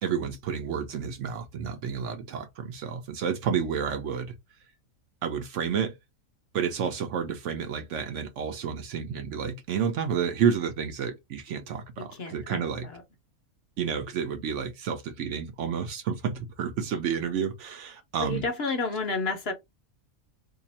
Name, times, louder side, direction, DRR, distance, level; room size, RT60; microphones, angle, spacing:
voice 1, 0.0-4.3 5.2-6.0 6.5-12.9 13.8-18.4, right 7 dB, 65° right, 0.9 m, -30 dB
voice 2, 12.0-13.0 18.2-19.5, left 3 dB, 55° left, 0.9 m, -31 dB
2.7 x 2.5 x 4.0 m
omnidirectional pair, 1.5 m